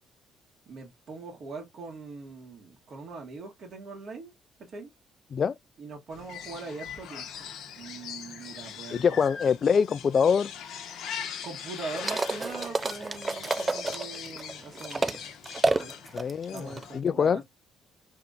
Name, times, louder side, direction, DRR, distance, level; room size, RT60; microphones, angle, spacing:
voice 1, 0.7-4.3 4.7-4.9 5.8-9.2 11.4-15.2 15.7-15.9 16.5-17.5, right 4 dB, 55° right, 1.7 m, -42 dB
sound 1, 6.1-17.0, left 8 dB, 70° left, 0.9 m, -41 dB
voice 2, 8.9-10.5 16.1-17.4, left 6 dB, 50° left, 0.3 m, -24 dB
sound 2, 11.8-15.2 15.4-16.8, right 3 dB, 30° right, 0.4 m, -29 dB
3.6 x 3.5 x 2.6 m
supercardioid pair, 70°, 0 cm